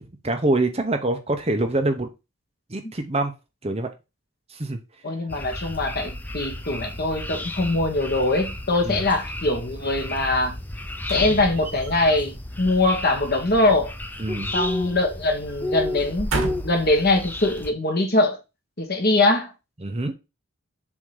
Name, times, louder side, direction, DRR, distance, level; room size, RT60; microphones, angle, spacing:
voice 1, 0.0-2.1 2.7-3.3 3.6-3.9 4.5-4.8 8.8-9.0 14.2-14.5 19.8-20.1, right 2 dB, 25° right, 0.7 m, -25 dB
voice 2, 5.0-10.6 11.1-13.9 14.5-18.4 18.8-19.5, left 2 dB, 45° left, 1.2 m, -22 dB
sound 1, 5.3-17.7, left 1 dB, 10° left, 0.4 m, -33 dB
sound 2, 11.0-12.2 13.7-14.9 15.2-15.4 16.0-16.9 17.6-17.7, right 2 dB, 75° right, 1.6 m, -32 dB
7.2 x 2.8 x 4.8 m
head